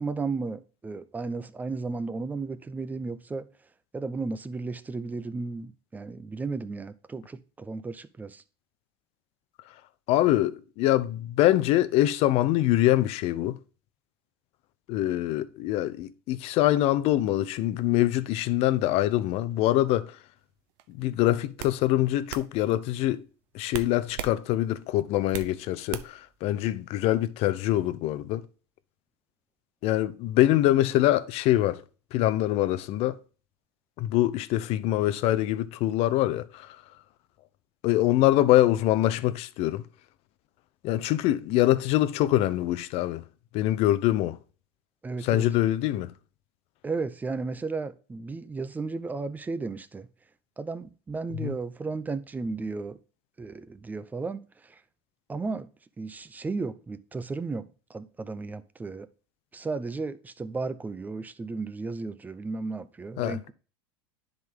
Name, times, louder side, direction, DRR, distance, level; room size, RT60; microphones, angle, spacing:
voice 1, 0.0-3.5 3.9-8.4 45.0-45.5 46.8-50.1 50.6-53.0 53.4-54.8 55.3-55.7 56.0-59.1 59.5-63.5, right 3 dB, 10° right, 0.6 m, -34 dB
voice 2, 10.1-13.6 14.9-20.2 20.9-23.2 23.5-28.4 29.8-31.8 32.1-33.2 34.0-36.8 37.8-39.8 40.8-43.2 43.5-44.4 45.2-46.1 51.4-51.5 63.2-63.4, left 14 dB, 50° left, 0.7 m, -24 dB
sound 1, 20.8-21.0 21.6-21.8 22.3-22.5 23.7-24.4 24.7-25.5 25.9-26.3, right 11 dB, 60° right, 0.7 m, -36 dB
10.5 x 3.9 x 3.7 m
supercardioid pair, 120°, 13 cm